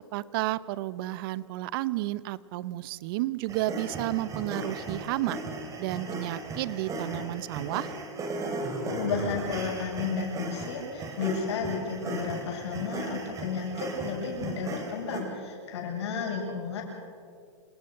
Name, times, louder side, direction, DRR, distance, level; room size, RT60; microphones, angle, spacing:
voice 1, 0.1-5.4 5.8-7.9, right 16 dB, 50° right, 18 dB, 0.8 m, -32 dB
sound 1, 3.5-15.2, right 2 dB, 20° right, 3.6 m, -36 dB
voice 2, 8.9-16.8, left 5 dB, 65° left, 0 dB, 7.6 m, -32 dB
28.0 x 18.0 x 6.7 m, 2.3 s
hypercardioid pair, 130°, 15 cm